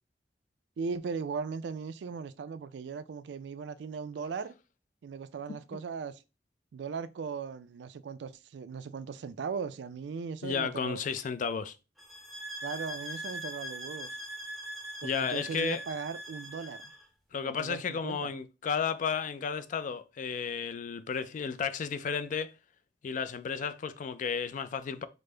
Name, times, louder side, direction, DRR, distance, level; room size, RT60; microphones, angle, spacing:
voice 1, 0.8-4.5 5.0-6.2 6.7-11.0 12.6-14.1 15.0-16.8 17.4-18.3, right 5 dB, 80° right, 0.3 m, -38 dB
voice 2, 5.5-5.8 10.4-11.7 15.0-15.8 17.3-22.5 23.0-25.1, left 6 dB, 45° left, 0.3 m, -33 dB
sound 1, 12.0-17.0, equal, ahead, 0.6 m, -41 dB
5.0 x 2.0 x 3.2 m
head